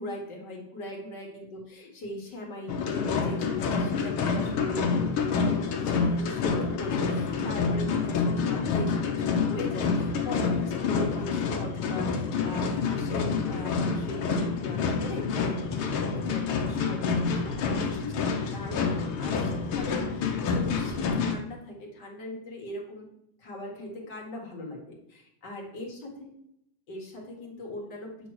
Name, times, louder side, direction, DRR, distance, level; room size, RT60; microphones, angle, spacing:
voice 1, 0.0-23.1 23.4-26.3 26.9-28.3, left 1 dB, 55° left, -1 dB, 2.3 m, -40 dB
sound 1, 2.7-21.3, left 5 dB, 80° left, 1.8 m, -28 dB
8.4 x 3.1 x 6.3 m, 0.79 s
omnidirectional pair, 2.3 m